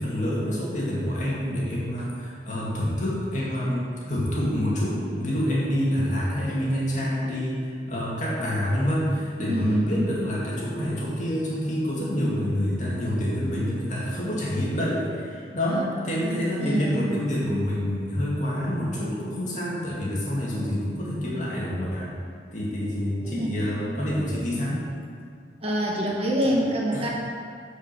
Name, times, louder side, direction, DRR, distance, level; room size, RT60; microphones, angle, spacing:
voice 1, 0.0-22.1 22.5-24.8 26.9-27.0, equal, 45° left, -5 dB, 2.2 m, -27 dB
voice 2, 9.4-10.1 15.7-15.9 16.2-17.2 23.2-23.5 25.6-27.1, right 1 dB, 35° right, -3 dB, 1.3 m, -26 dB
9.2 x 5.0 x 6.6 m, 2.1 s
head